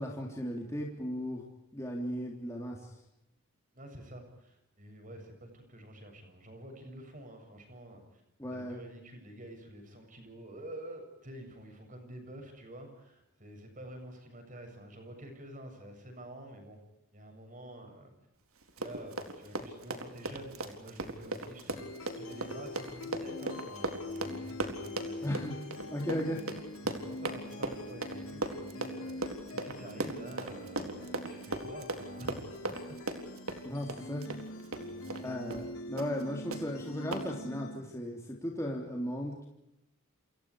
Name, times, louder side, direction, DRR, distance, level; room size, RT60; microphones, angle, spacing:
voice 1, 0.0-1.4 1.7-3.0 8.4-8.8 25.2-25.5 25.9-26.4 33.6-34.3 35.2-39.5, equal, 15° left, -1 dB, 3.4 m, -36 dB
voice 2, 3.7-8.2 8.5-16.8 17.1-18.1 18.8-25.4 26.8-33.0 34.8-35.3, right 1 dB, 35° right, 5 dB, 7.5 m, -48 dB
Run, 18.6-35.3 35.5-35.7 36.0-36.2 36.5-36.6 37.1-37.2, right 2 dB, 75° right, 4.0 m, -38 dB
sound 1, 21.8-37.8, left 2 dB, 85° left, 6.2 m, -44 dB
29.5 x 28.0 x 5.0 m, 0.84 s
head